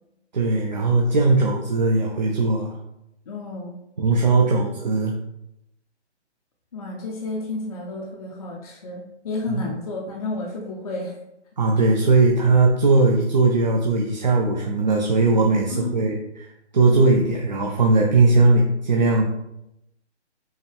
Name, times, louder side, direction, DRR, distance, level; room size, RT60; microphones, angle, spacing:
voice 1, 0.3-2.7 4.0-5.1 9.5-9.6 11.6-19.2, right 3 dB, 40° right, 0 dB, 0.4 m, -19 dB
voice 2, 3.3-3.8 6.7-11.2 15.7-16.2 16.9-17.0, left 3 dB, 35° left, -2 dB, 0.5 m, -31 dB
5.4 x 2.2 x 3.4 m, 0.85 s
hypercardioid pair, 155°, 35 cm